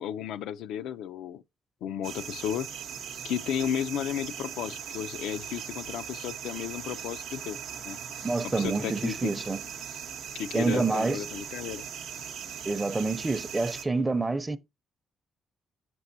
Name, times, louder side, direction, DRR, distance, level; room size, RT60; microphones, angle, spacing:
voice 1, 0.0-1.4 1.8-2.7 3.2-7.6 7.8-8.0 8.4-9.3 10.3-11.8, left 9 dB, 85° left, 0.3 m, -33 dB
sound 1, 2.0-13.8, right 8 dB, 85° right, 0.7 m, -39 dB
voice 2, 8.2-9.6 10.5-11.2 12.7-14.6, right 3 dB, 20° right, 0.5 m, -27 dB
6.0 x 5.9 x 2.6 m
cardioid pair, 90°, 0 cm